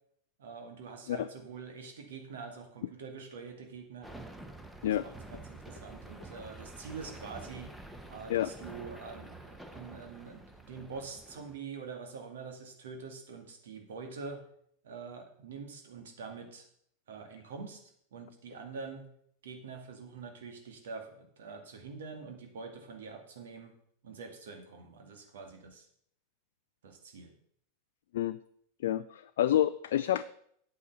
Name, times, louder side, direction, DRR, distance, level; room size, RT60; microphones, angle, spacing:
voice 1, 0.4-4.1 4.8-7.7 8.1-14.4 14.8-16.6 17.1-17.8 18.1-19.1 19.4-23.7 24.0-25.9 26.8-27.3, right 5 dB, 60° right, 4 dB, 2.2 m, -45 dB
sound 1, 4.0-11.6, right 2 dB, 5° right, 1.2 m, -48 dB
voice 2, 28.8-30.3, left 12 dB, 55° left, 11 dB, 0.4 m, -28 dB
8.9 x 8.5 x 5.7 m, 0.67 s
figure-of-eight pair, 90°, 0 cm